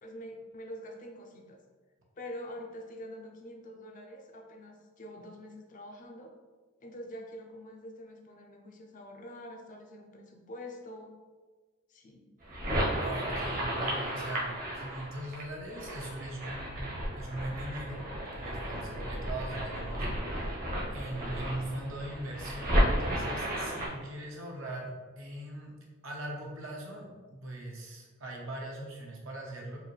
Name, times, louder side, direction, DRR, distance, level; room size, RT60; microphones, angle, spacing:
voice 1, 0.0-1.6 2.2-6.3 6.8-11.1 11.9-12.2, equal, 40° left, 2 dB, 0.5 m, -45 dB
sound 1, 12.4-23.9, equal, 40° right, 0.9 m, -33 dB
voice 2, 13.0-16.8 17.1-18.1 18.4-20.6 20.9-25.7 26.0-29.8, right 1 dB, 70° right, -1 dB, 0.9 m, -40 dB
4.7 x 2.5 x 3.2 m, 1.4 s
head